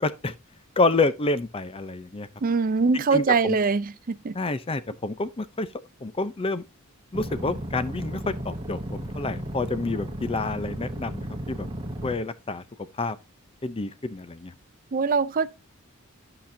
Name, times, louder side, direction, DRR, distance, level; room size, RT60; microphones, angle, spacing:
voice 1, 0.0-0.3 0.8-2.3 2.9-3.6 4.3-5.7 6.0-6.6 7.1-11.7 12.0-12.6 13.0-13.2 13.6-14.5, left 3 dB, 25° left, 0.5 m, -28 dB
voice 2, 2.4-4.3 14.9-15.5, right 4 dB, 40° right, 0.4 m, -23 dB
sound 1, 7.1-12.1, right 1 dB, 25° right, 1.2 m, -34 dB
11.0 x 5.9 x 2.6 m
head